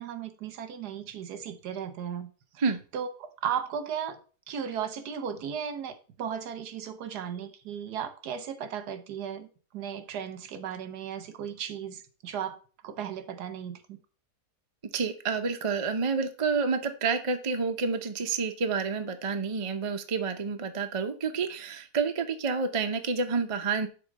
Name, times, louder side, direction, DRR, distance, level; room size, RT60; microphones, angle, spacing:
voice 1, 0.0-2.3 2.9-4.2 4.5-9.5 9.7-12.6 12.8-14.0, right 8 dB, 80° right, 1.4 m, -35 dB
voice 2, 14.9-23.9, right 5 dB, 35° right, 0.5 m, -29 dB
6.8 x 3.8 x 6.4 m
omnidirectional pair, 1.7 m